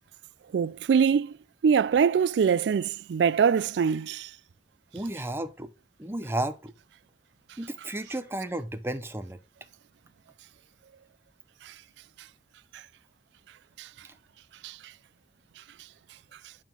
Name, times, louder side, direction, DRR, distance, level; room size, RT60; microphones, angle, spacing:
voice 1, 0.5-1.3 1.6-4.3 11.7-11.8 13.8-13.9 14.6-14.8, right 6 dB, 75° right, 0.3 m, -23 dB
voice 2, 4.9-5.7 6.0-6.7 7.6-9.4, right 1 dB, 15° right, 0.7 m, -33 dB
9.1 x 3.6 x 6.0 m
head